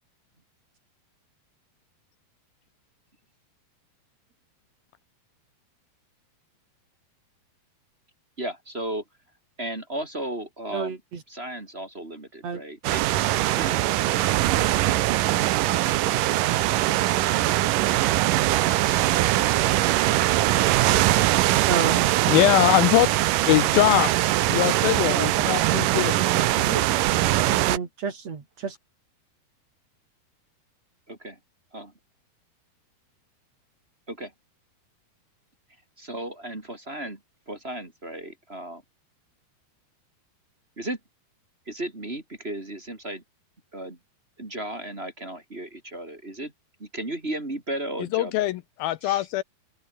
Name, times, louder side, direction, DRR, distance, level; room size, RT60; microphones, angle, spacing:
voice 1, 8.4-9.0 9.6-11.0 11.3-13.9 31.1-31.4 31.7-31.9 34.1-34.3 36.0-37.2 37.5-38.8 40.8-41.0 41.7-43.2 43.7-44.0 44.4-46.5 46.8-48.5 49.0-49.2, right 1 dB, 20° right, 2.4 m, -35 dB
voice 2, 10.7-11.2 12.4-12.6 21.7-22.1 25.1-25.5 25.9-26.9 27.5-28.8, right 5 dB, 45° right, 3.9 m, -31 dB
sound 1, 12.8-27.8, right 16 dB, 75° right, 2.1 m, -22 dB
voice 3, 22.3-23.1 23.5-24.1 24.5-26.2 48.1-49.4, left 15 dB, 80° left, 2.4 m, -21 dB
open air
omnidirectional pair, 4.6 m